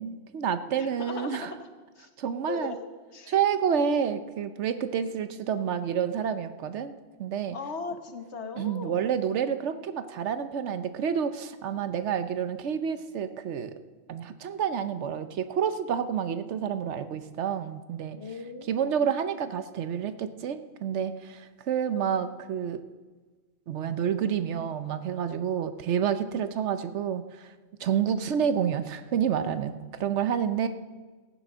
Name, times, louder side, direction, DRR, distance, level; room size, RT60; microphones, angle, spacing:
voice 1, 0.0-1.5 2.2-2.7 3.3-6.9 7.2-7.6 8.6-13.7 14.1-18.2 18.7-22.8 23.7-27.2 27.8-30.7, right 8 dB, 80° right, 11 dB, 1.1 m, -29 dB
voice 2, 0.8-1.6 2.0-2.1 2.5-3.3 7.5-9.1 18.1-19.1, left 4 dB, 75° left, 6 dB, 1.5 m, -38 dB
15.0 x 9.3 x 6.2 m, 1.3 s
omnidirectional pair, 1.2 m